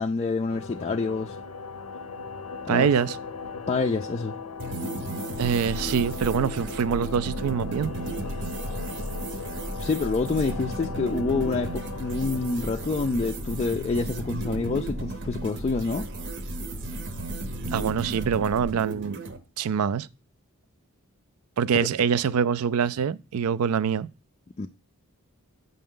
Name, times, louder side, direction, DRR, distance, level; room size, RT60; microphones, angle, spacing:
voice 1, 0.0-1.4 2.7-2.9 3.7-4.3 9.8-16.1 24.6-24.7, left 4 dB, 30° left, 0.3 m, -27 dB
sound 1, 0.5-14.1, left 5 dB, 80° left, 0.5 m, -38 dB
voice 2, 2.7-3.2 5.4-7.9 17.7-19.2 19.6-20.1 21.6-24.1, right 7 dB, 75° right, 0.4 m, -24 dB
sound 2, 4.6-19.4, right 3 dB, 55° right, 0.8 m, -36 dB
sound 3, 5.3-18.8, left 1 dB, ahead, 0.7 m, -38 dB
7.7 x 5.4 x 3.7 m
head